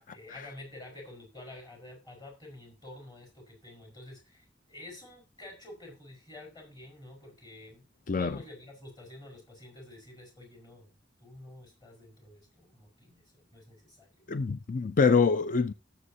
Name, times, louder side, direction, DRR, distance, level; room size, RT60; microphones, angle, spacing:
voice 1, 0.1-7.8 8.2-10.9 11.2-14.3, left 2 dB, 25° left, 4.7 m, -49 dB
voice 2, 14.3-15.7, left 5 dB, 45° left, 0.4 m, -25 dB
17.5 x 7.4 x 2.8 m
head